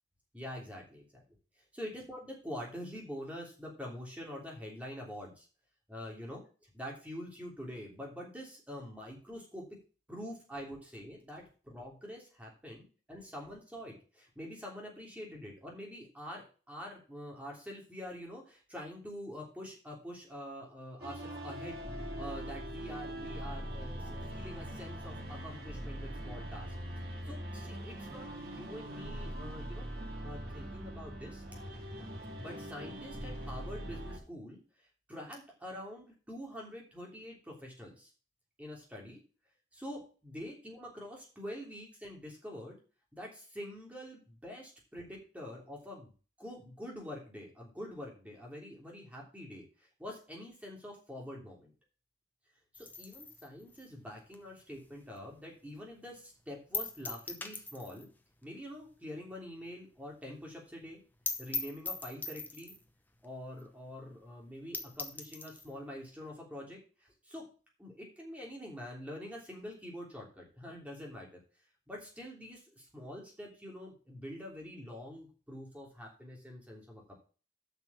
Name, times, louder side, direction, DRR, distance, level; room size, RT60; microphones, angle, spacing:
voice 1, 0.3-1.0 1.7-5.5 5.9-9.7 10.1-26.7 27.2-29.8 30.2-31.4 32.4-38.1 38.6-39.2 39.7-42.8 43.1-46.1 46.4-51.7 52.7-58.1 58.4-61.0 61.4-62.8 63.2-67.5 67.8-71.3 71.9-77.1, equal, 10° right, -2 dB, 3.1 m, -46 dB
sound 1, 21.0-34.2, equal, 55° right, 3.4 m, -42 dB
sound 2, 52.7-55.4 55.7-55.8 56.1-56.2 56.7-58.1 58.4-58.5 58.8-58.9 59.3-59.4 59.7-59.8 60.0-60.1 60.4-60.5 60.9-61.0 61.3-62.9 63.6-63.7 64.0-64.1 64.5-64.6 64.7-65.7, left 3 dB, 10° left, 0.8 m, -40 dB
8.0 x 6.0 x 7.2 m, 0.35 s
head